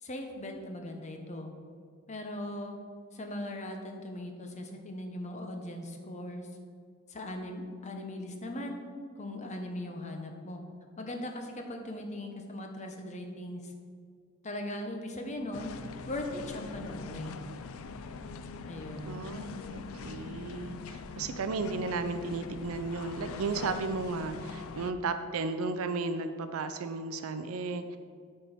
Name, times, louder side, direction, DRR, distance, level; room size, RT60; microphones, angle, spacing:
voice 1, 0.0-1.5 2.1-2.8 3.1-6.5 7.1-8.8 9.2-10.6 11.0-13.7 14.4-15.8 16.1-17.5 18.7-19.1, left 1 dB, 35° left, 4 dB, 0.9 m, -39 dB
sound 1, 15.5-24.9, left 4 dB, 65° left, 0.4 m, -43 dB
voice 2, 19.1-28.0, right 3 dB, 70° right, 10 dB, 0.4 m, -34 dB
8.2 x 4.5 x 5.8 m, 2.1 s
head